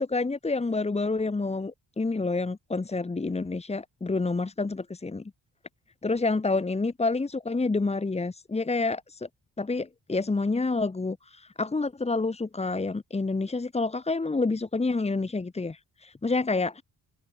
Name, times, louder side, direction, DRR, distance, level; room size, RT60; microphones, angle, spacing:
voice 1, 0.0-5.2 6.0-9.3 9.6-16.8, left 3 dB, 15° left, 3.1 m, -28 dB
wide cardioid pair, 160°, 37 cm